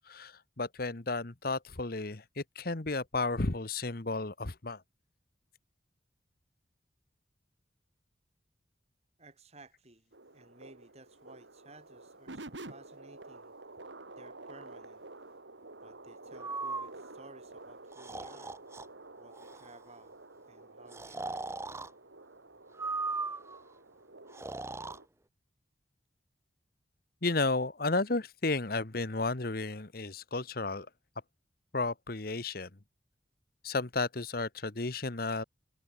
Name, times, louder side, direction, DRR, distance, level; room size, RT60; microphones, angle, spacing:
voice 1, 0.1-4.8 27.2-30.9 31.7-32.7 33.6-35.4, left 3 dB, 55° left, 1.3 m, -33 dB
voice 2, 9.2-13.5 14.2-15.0 15.8-18.6 19.2-20.1 20.5-21.5, right 2 dB, 35° right, 5.7 m, -57 dB
sound 1, 10.1-25.0, right 2 dB, 80° right, 3.0 m, -50 dB
Breathing, 16.4-16.9 17.9-18.9 19.3-19.7 20.9-21.9 22.7-23.6 24.3-25.0, right 3 dB, 15° right, 0.7 m, -38 dB
head